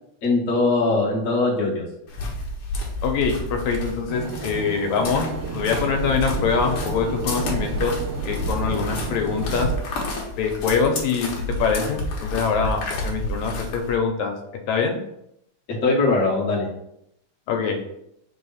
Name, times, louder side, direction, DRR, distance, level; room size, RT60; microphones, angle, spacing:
voice 1, 0.2-1.8 15.8-16.7, left 3 dB, 35° left, -4 dB, 1.3 m, -21 dB
sound 1, 2.1-14.0, left 1 dB, 60° left, 1.7 m, -30 dB
voice 2, 3.0-5.3 5.5-7.9 8.3-9.7 10.4-11.3 11.6-14.3 14.7-15.0 17.5-17.9, left 5 dB, 75° left, 3 dB, 2.0 m, -24 dB
sound 2, 4.1-9.8, right 6 dB, 75° right, 1.5 m, -34 dB
5.0 x 3.4 x 5.6 m, 0.78 s
omnidirectional pair, 3.3 m